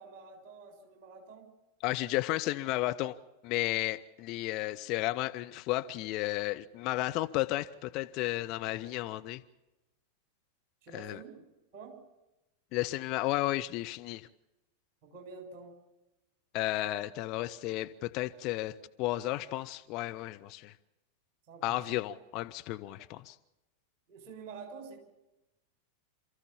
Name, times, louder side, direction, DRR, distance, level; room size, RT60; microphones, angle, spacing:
voice 1, 0.0-1.5 10.8-12.0 15.0-15.8 21.5-21.8 24.1-25.0, right 4 dB, 40° right, 6.6 m, -48 dB
voice 2, 1.8-3.2 3.4-9.4 10.9-11.2 12.7-14.3 16.5-20.7 21.6-23.4, left 17 dB, 40° left, 0.7 m, -33 dB
27.5 x 14.5 x 7.2 m
figure-of-eight pair, 90°, 0 cm